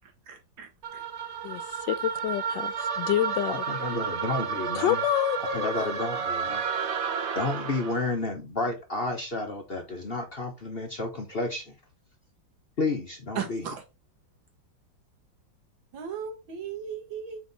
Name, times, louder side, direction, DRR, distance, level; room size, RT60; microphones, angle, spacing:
sound 1, 0.8-8.1, right 6 dB, 60° right, 0.7 m, -31 dB
voice 1, 1.4-3.7 4.7-6.0, left 12 dB, 80° left, 1.2 m, -28 dB
voice 2, 3.5-5.0 5.5-6.6 7.3-11.7 12.8-13.7, left 2 dB, 40° left, 1.0 m, -31 dB
voice 3, 13.4-13.8 15.9-17.4, right 7 dB, 85° right, 2.2 m, -35 dB
6.2 x 4.6 x 4.0 m
omnidirectional pair, 2.0 m